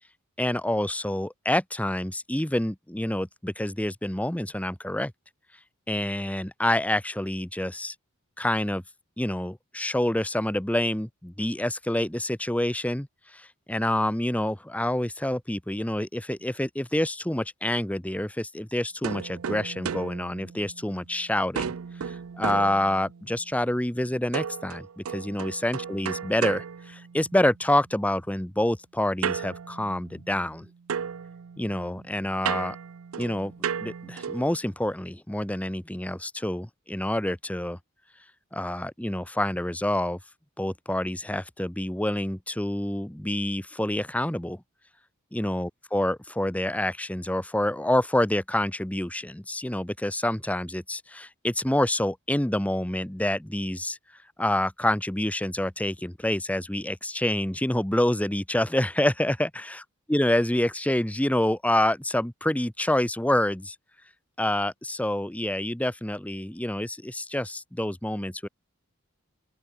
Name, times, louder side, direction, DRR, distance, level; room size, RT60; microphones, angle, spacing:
voice 1, 0.4-5.1 5.9-7.9 8.4-8.8 9.2-13.1 13.3-21.7 22.0-30.7 31.6-32.8 33.2-33.5 33.8-37.8 38.5-40.2 40.6-44.6 45.3-54.0 54.4-59.8 60.1-63.8 64.4-68.5, left 1 dB, 5° left, 1.0 m, -27 dB
sound 1, 19.0-21.1 21.6-23.4 24.3-27.6 29.2-30.6 30.9-34.6, right 7 dB, 75° right, 0.5 m, -34 dB
open air
head